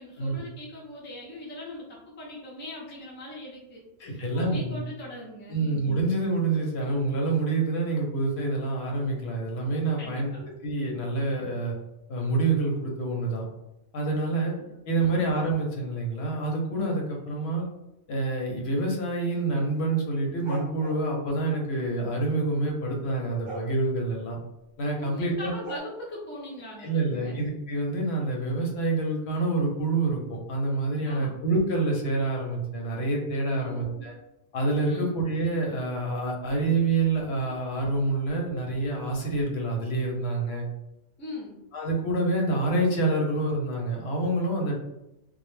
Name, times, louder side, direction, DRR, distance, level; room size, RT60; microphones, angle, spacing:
voice 1, 0.0-5.6 10.0-10.4 14.6-15.2 25.0-27.4 31.1-31.3 33.5-34.1 34.9-35.1 41.2-41.6, left 1 dB, 15° left, -5 dB, 0.4 m, -41 dB
voice 2, 4.0-4.8 5.5-10.3 10.6-11.7 12.1-13.5 13.9-14.5 14.9-17.6 18.1-24.4 24.8-25.5 26.8-34.1 34.5-40.7 41.7-44.8, right 2 dB, 70° left, 0 dB, 0.8 m, -27 dB
sound 1, 20.5-21.1 23.4-23.7 25.6-25.8, right 4 dB, 60° right, 0.8 m, -37 dB
2.2 x 2.0 x 3.0 m, 0.90 s
omnidirectional pair, 1.2 m